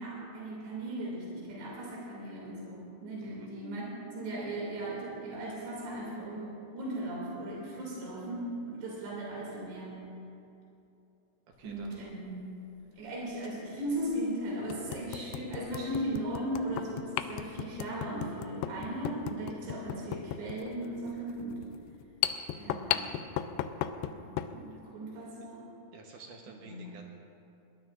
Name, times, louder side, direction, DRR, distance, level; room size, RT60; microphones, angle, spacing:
voice 1, 0.0-10.1 11.6-12.5 13.0-21.6 22.5-23.1 24.1-25.7 26.6-26.9, right 1 dB, 90° right, -4 dB, 4.8 m, -37 dB
voice 2, 11.6-12.1 24.7-24.8 25.9-27.0, right 4 dB, 70° right, 1 dB, 2.0 m, -51 dB
sound 1, 11.7-11.9 13.4-13.5 14.1-14.2 14.7-24.6, left 11 dB, 90° left, 2.8 m, -36 dB
sound 2, 14.6-20.1, left 7 dB, ahead, 3.5 m, -48 dB
22.0 x 19.0 x 2.5 m, 2.7 s
omnidirectional pair, 4.7 m